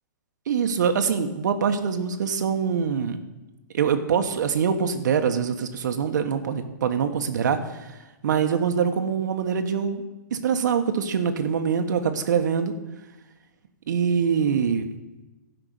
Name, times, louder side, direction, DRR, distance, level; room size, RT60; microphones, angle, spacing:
voice 1, 0.5-3.2 3.7-8.0 8.2-10.0 10.3-12.7 13.9-14.9, right 7 dB, 65° right, 6 dB, 1.2 m, -24 dB
12.0 x 5.9 x 9.3 m, 1.1 s
hypercardioid pair, 150°, 10 cm